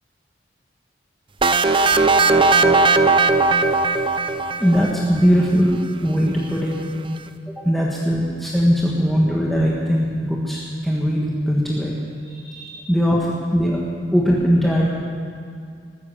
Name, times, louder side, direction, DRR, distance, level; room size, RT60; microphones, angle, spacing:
sound 1, 1.4-5.2, right 3 dB, 30° right, 0.6 m, -17 dB
voice 1, 4.6-6.8 7.6-12.0 12.3-13.3 13.5-13.8 14.1-14.9, equal, ahead, -5 dB, 1.5 m, -20 dB
19.0 x 9.7 x 7.3 m, 2.3 s
head